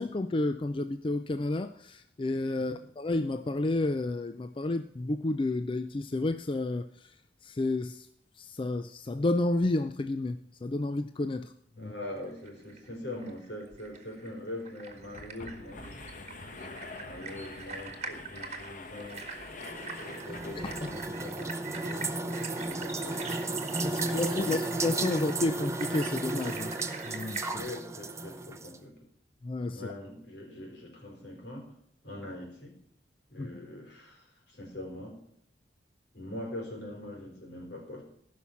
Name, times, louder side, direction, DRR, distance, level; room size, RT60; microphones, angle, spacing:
voice 1, 0.0-7.1 7.4-8.1 8.4-11.5 11.8-11.9 23.8-26.7 27.1-27.6 29.4-29.8 33.4-33.6, left 2 dB, 30° left, 9 dB, 0.4 m, -31 dB
voice 2, 11.8-15.8 17.0-19.3 20.2-23.5 23.8-24.7 27.5-29.0 29.7-31.7 32.0-32.8 33.3-35.2 36.1-38.0, left 1 dB, 70° left, 0 dB, 4.3 m, -43 dB
sound 1, 12.2-27.6, right 4 dB, 40° right, 1.7 m, -44 dB
sound 2, 13.7-13.8 14.1-14.2 14.9-21.3, left 3 dB, 50° left, 1.1 m, -45 dB
sound 3, 19.1-28.8, right 2 dB, 15° right, 0.7 m, -34 dB
15.5 x 6.0 x 7.1 m, 0.67 s
head